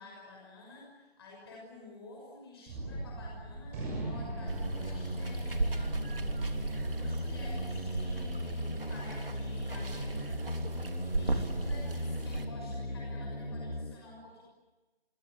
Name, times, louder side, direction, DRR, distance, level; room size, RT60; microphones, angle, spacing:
voice 1, 0.0-6.2 6.9-10.5 11.0-14.4, left 2 dB, 25° left, -2 dB, 6.2 m, -51 dB
Gunshot gunfire, 2.7-9.2, right 2 dB, 15° right, 6.4 m, -42 dB
sound 1, 4.3-13.9, left 1 dB, 85° left, 6.6 m, -38 dB
Water, 4.5-12.4, right 2 dB, 65° right, 3.5 m, -36 dB
27.5 x 24.0 x 9.1 m, 1.2 s
figure-of-eight pair, 160°, 31 cm